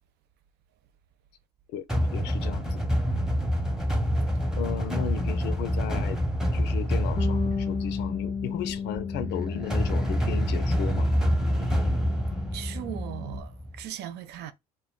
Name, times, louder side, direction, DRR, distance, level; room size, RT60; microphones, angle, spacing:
sound 1, 1.9-13.8, equal, 5° right, 0.8 m, -27 dB
voice 1, 2.1-2.8 4.6-6.2 6.5-11.1, left 9 dB, 65° left, 0.4 m, -35 dB
Bass guitar, 7.2-13.4, left 6 dB, 20° left, 0.6 m, -35 dB
voice 2, 12.5-14.5, right 11 dB, 60° right, 0.4 m, -38 dB
2.1 x 2.1 x 3.5 m
hypercardioid pair, 65°, 19 cm